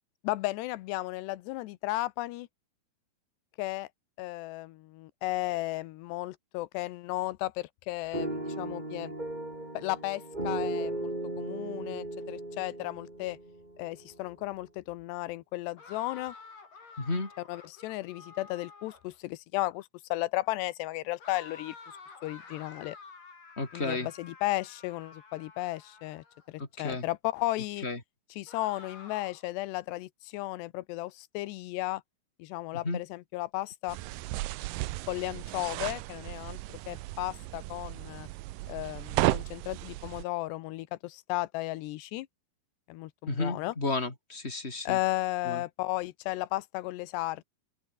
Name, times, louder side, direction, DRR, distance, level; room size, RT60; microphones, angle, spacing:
voice 1, 0.2-2.5 3.6-3.9 4.2-9.1 9.7-11.1 11.4-13.4 13.8-16.3 17.5-21.8 22.2-23.0 23.7-27.9 28.3-32.0 32.4-34.0 35.1-38.3 38.7-42.3 42.9-43.7 44.9-47.4, left 18 dB, 90° left, 3.0 m, -34 dB
sound 1, 8.1-14.2, right 1 dB, 10° right, 4.2 m, -36 dB
sound 2, 15.8-19.2 21.2-26.5 28.5-29.5, left 4 dB, 55° left, 7.5 m, -50 dB
voice 2, 17.0-17.3 23.6-24.1 26.6-27.0 27.8-28.0 32.8-33.0 43.3-45.0 45.5-45.6, left 3 dB, 15° left, 4.4 m, -32 dB
sound 3, 33.9-40.2, right 18 dB, 90° right, 1.9 m, -34 dB
open air
omnidirectional pair, 4.7 m